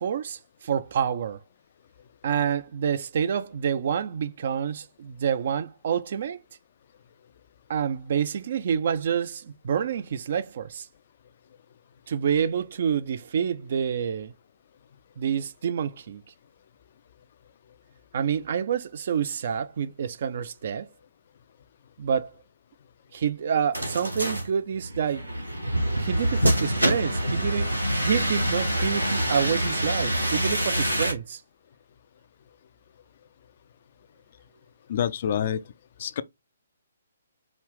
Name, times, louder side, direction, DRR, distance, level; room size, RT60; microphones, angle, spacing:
voice 1, 0.0-1.4 2.2-6.4 7.7-10.9 12.1-14.3 15.2-16.2 18.1-20.9 22.0-22.3 23.1-25.3 26.0-31.4, right 7 dB, 50° right, 0.4 m, -28 dB
sound 1, 23.7-31.1, equal, 90° right, 1.8 m, -26 dB
voice 2, 34.9-35.6 36.0-36.2, left 9 dB, 45° left, 0.4 m, -26 dB
4.9 x 2.6 x 3.3 m
figure-of-eight pair, 130°, 0 cm